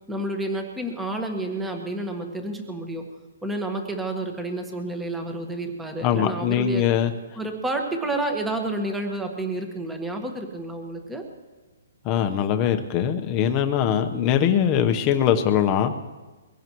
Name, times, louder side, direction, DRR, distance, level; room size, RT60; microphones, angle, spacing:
voice 1, 0.0-3.0 3.4-6.8 7.4-11.2, right 2 dB, 5° right, 3 dB, 1.6 m, -30 dB
voice 2, 6.0-7.1 12.0-15.9, left 9 dB, 25° left, 7 dB, 1.0 m, -22 dB
23.0 x 16.5 x 3.1 m, 1.2 s
hypercardioid pair, 160°, 0 cm